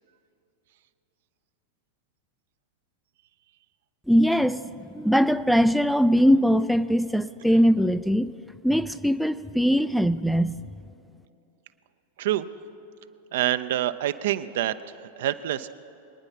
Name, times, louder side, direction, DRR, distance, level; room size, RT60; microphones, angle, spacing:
voice 1, 4.1-8.3 8.6-10.6, equal, ahead, 13 dB, 0.3 m, -21 dB
voice 2, 13.3-14.7 15.2-15.7, right 13 dB, 55° right, 13 dB, 0.5 m, -26 dB
24.5 x 9.8 x 5.6 m, 3.0 s
figure-of-eight pair, 90°, 0 cm